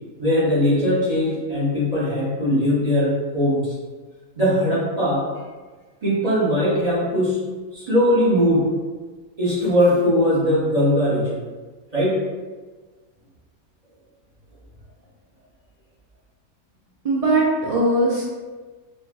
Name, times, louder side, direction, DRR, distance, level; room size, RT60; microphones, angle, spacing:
voice 1, 0.2-3.7 4.4-5.2 6.0-7.4 7.7-8.6 9.4-11.4 11.9-12.2, equal, 25° right, -9 dB, 1.4 m, -20 dB
voice 2, 17.0-18.3, right 2 dB, 50° right, -6 dB, 0.4 m, -20 dB
5.2 x 2.6 x 2.3 m, 1.3 s
omnidirectional pair, 1.5 m